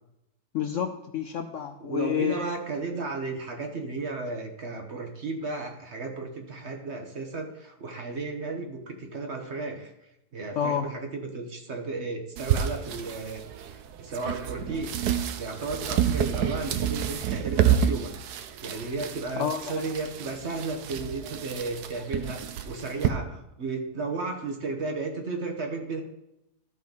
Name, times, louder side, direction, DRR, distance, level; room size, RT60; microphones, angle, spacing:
voice 1, 0.5-2.5 10.6-10.9 19.4-19.9, left 8 dB, 70° left, 6 dB, 0.7 m, -29 dB
voice 2, 1.8-9.9 10.3-14.9 15.4-18.1 18.6-26.0, right 3 dB, 45° right, 3 dB, 1.2 m, -34 dB
sound 1, 12.4-23.1, right 9 dB, 75° right, 1.2 m, -29 dB
13.5 x 5.3 x 3.9 m, 0.85 s
omnidirectional pair, 1.7 m